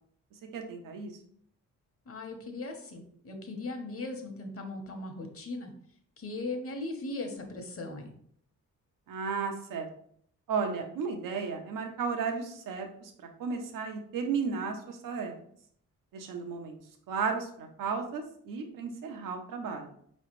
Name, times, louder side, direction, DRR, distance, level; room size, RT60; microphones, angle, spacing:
voice 1, 0.5-1.1 9.1-9.9 10.5-13.1 13.4-15.3 16.1-16.8 17.1-19.9, right 5 dB, 85° right, 4 dB, 0.8 m, -34 dB
voice 2, 2.1-5.7 6.2-8.1, left 2 dB, 45° left, 4 dB, 1.1 m, -38 dB
4.8 x 3.2 x 3.1 m, 0.64 s
cardioid pair, 75°, 32 cm